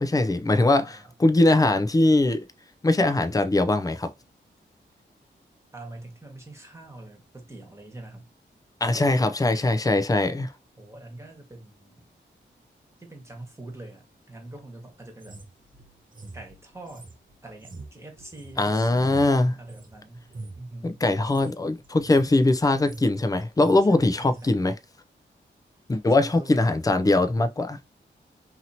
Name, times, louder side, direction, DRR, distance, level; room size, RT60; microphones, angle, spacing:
voice 1, 0.0-2.4 2.8-4.1 8.8-10.5 18.6-19.5 20.8-24.7 25.9-27.8, left 2 dB, 20° left, 0.5 m, -21 dB
voice 2, 0.6-1.1 5.7-8.3 10.8-12.1 13.0-15.4 16.3-17.1 17.4-20.3 20.6-21.0 23.9-24.7 26.2-26.6, right 2 dB, 15° right, 1.3 m, -44 dB
sound 1, 15.2-19.9 20.3-20.7 21.2-21.5 21.8-22.3 22.6-23.2 23.4-23.8 24.3-24.5, right 2 dB, 45° right, 1.0 m, -43 dB
2.8 x 2.8 x 2.7 m
cardioid pair, 55°, 20 cm